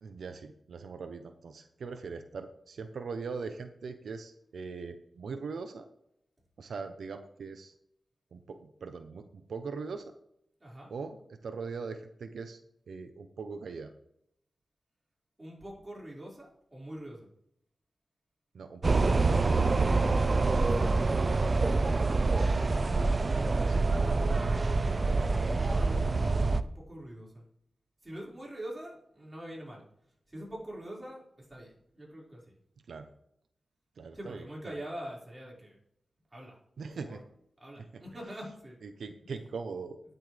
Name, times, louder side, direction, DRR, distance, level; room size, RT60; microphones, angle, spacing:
voice 1, 0.0-5.9 6.6-7.7 8.3-10.1 10.9-12.6 12.9-13.9 18.5-19.5 23.7-23.9 32.9-33.1 34.0-34.8 36.8-37.2 37.8-38.0 38.8-40.0, right 4 dB, 85° right, 8 dB, 0.8 m, -41 dB
voice 2, 10.6-10.9 15.4-17.3 20.1-21.6 21.9-22.7 24.6-27.4 28.0-29.8 30.3-31.2 31.5-32.6 34.1-35.8 36.3-36.6 36.9-37.2 37.6-38.8, right 1 dB, 20° right, -4 dB, 5.2 m, -45 dB
sound 1, 18.8-26.6, right 3 dB, 45° right, 0.5 m, -26 dB
13.0 x 10.0 x 3.4 m, 0.73 s
wide cardioid pair, 80°, 0 cm